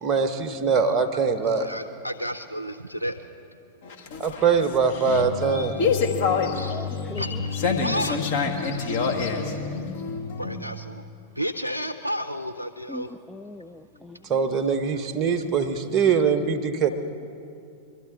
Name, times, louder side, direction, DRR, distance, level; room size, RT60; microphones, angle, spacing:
voice 1, 0.0-1.7 4.2-5.7 14.3-16.9, right 5 dB, 25° right, 6 dB, 1.0 m, -22 dB
voice 2, 1.6-3.2 6.6-6.8 7.2-7.5 7.8-8.2 8.8-8.9 10.4-10.8 11.4-13.1, equal, 85° right, 9 dB, 0.4 m, -31 dB
sound 1, 3.8-10.7, left 5 dB, 55° left, 1.4 m, -27 dB
voice 3, 6.7-7.4 7.9-8.1 12.9-14.6, left 1 dB, 10° left, 7 dB, 0.3 m, -41 dB
23.5 x 12.5 x 3.8 m, 2.5 s
figure-of-eight pair, 90°, 0 cm